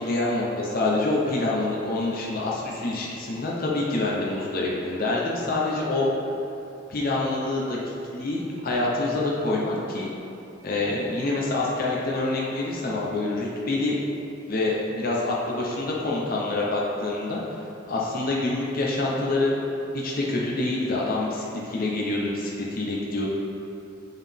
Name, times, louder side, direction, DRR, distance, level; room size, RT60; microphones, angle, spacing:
voice 1, 0.0-6.1 6.9-10.1 10.6-14.0 14.5-17.4 17.9-19.5 20.0-23.3, left 2 dB, 45° left, -4 dB, 0.7 m, -26 dB
7.3 x 4.0 x 3.5 m, 2.8 s
head